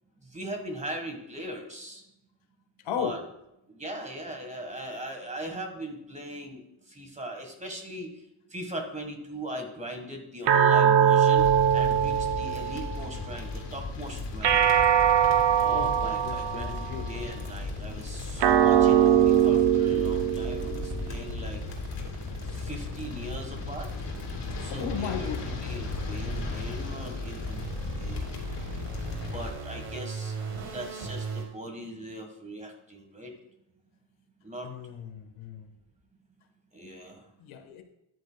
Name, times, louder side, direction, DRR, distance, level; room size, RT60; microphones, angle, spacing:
voice 1, 0.2-2.0 3.0-3.2 3.7-8.1 8.5-14.9 15.6-21.6 22.5-23.9 24.6-27.7 28.0-28.5 29.3-33.3 34.4-34.7 36.7-37.3, right 1 dB, 15° right, 4 dB, 1.5 m, -40 dB
voice 2, 2.8-3.2 15.6-17.1 24.7-25.6 34.6-35.7 37.4-37.8, left 8 dB, 80° left, 7 dB, 1.4 m, -36 dB
sound 1, 10.5-13.1 14.4-17.0 18.4-21.0, right 9 dB, 60° right, 0.8 m, -22 dB
sound 2, 11.4-29.5, left 4 dB, 60° left, 2.9 m, -36 dB
sound 3, 14.5-31.4, right 4 dB, 80° right, 2.9 m, -39 dB
13.5 x 10.5 x 2.3 m, 0.85 s
cardioid pair, 155°, 47 cm